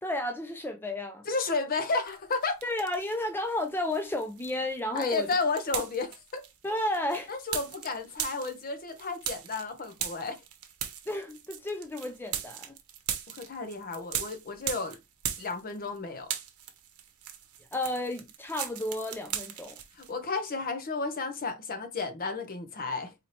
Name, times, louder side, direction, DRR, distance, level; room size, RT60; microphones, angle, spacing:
voice 1, 0.0-1.2 2.6-5.3 6.6-7.3 11.1-12.7 17.7-19.8, left 1 dB, 10° left, 0.3 m, -32 dB
voice 2, 1.3-2.6 4.9-6.4 7.3-10.4 13.3-15.0 15.4-16.3 20.0-23.1, left 3 dB, 40° left, 0.8 m, -32 dB
sound 1, 2.1-3.2 3.6-16.0 16.2-20.1, right 9 dB, 75° right, 0.8 m, -38 dB
4.0 x 2.8 x 3.2 m
head